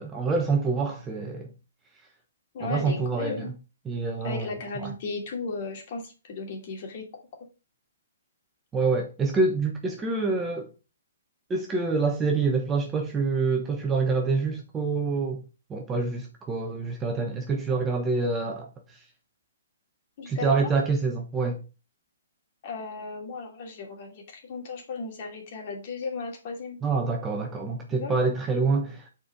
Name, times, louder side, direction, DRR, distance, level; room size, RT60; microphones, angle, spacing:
voice 1, 0.0-1.5 2.6-3.5 3.9-4.5 4.8-4.9 8.7-10.7 11.5-15.4 15.7-18.7 20.3-21.6 26.8-29.1, right 4 dB, 15° right, 1.0 m, -26 dB
voice 2, 2.5-3.5 4.2-7.2 20.2-20.7 22.6-26.8 28.0-28.1, left 4 dB, 45° left, 2.6 m, -35 dB
6.4 x 4.5 x 5.0 m
hypercardioid pair, 150°, 0 cm